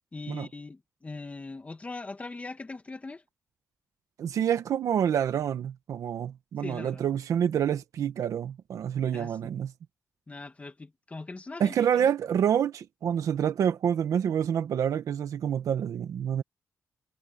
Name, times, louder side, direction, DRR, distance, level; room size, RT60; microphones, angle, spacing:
voice 1, 0.1-3.2 6.6-7.0 9.1-9.5 10.3-12.1, left 3 dB, 25° left, 2.2 m, -41 dB
voice 2, 4.2-9.7 11.6-16.4, right 9 dB, 90° right, 1.1 m, -27 dB
wide cardioid pair, 115°, 5 cm